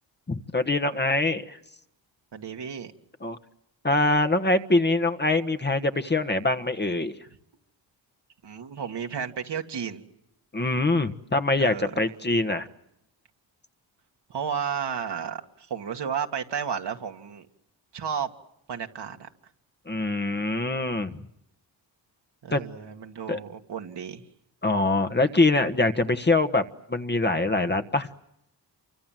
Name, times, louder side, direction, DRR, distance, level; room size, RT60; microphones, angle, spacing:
voice 1, 0.3-1.6 3.2-3.4 3.8-7.2 10.5-12.7 19.9-21.1 22.5-22.6 23.3-23.4 24.6-26.6 26.9-28.1, left 2 dB, 25° left, 8 dB, 1.4 m, -24 dB
voice 2, 2.3-2.9 8.4-10.0 11.5-12.0 14.3-17.5 17.9-18.3 18.7-19.3 22.4-24.2, right 7 dB, 65° right, 4 dB, 2.3 m, -33 dB
28.5 x 24.5 x 7.7 m, 0.83 s
cardioid pair, 80°, 44 cm